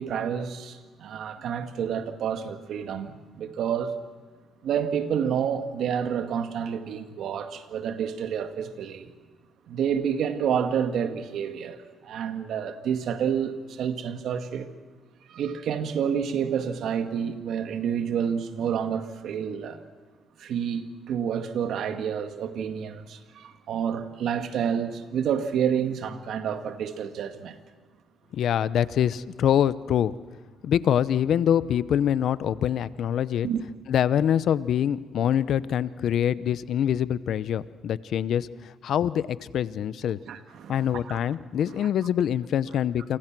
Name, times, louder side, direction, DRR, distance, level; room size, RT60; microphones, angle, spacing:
voice 1, 0.0-3.9 4.6-9.1 9.7-14.7 15.3-19.8 20.4-27.6 33.4-33.6 40.3-41.2 41.8-41.9, right 8 dB, 75° right, 2.0 m, -29 dB
voice 2, 28.3-30.1 30.6-33.5 33.9-40.2 40.7-43.2, left 9 dB, 70° left, 0.8 m, -25 dB
28.5 x 25.0 x 6.2 m
cardioid pair, 90°, 0 cm